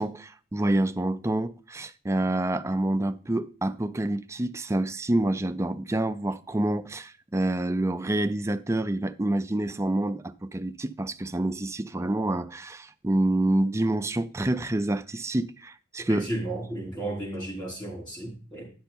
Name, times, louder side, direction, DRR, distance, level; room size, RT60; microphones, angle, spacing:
voice 1, 0.0-16.3, right 1 dB, 15° right, 0.4 m, -27 dB
voice 2, 16.1-18.7, right 1 dB, 20° left, 4.9 m, -33 dB
10.0 x 6.6 x 4.4 m
head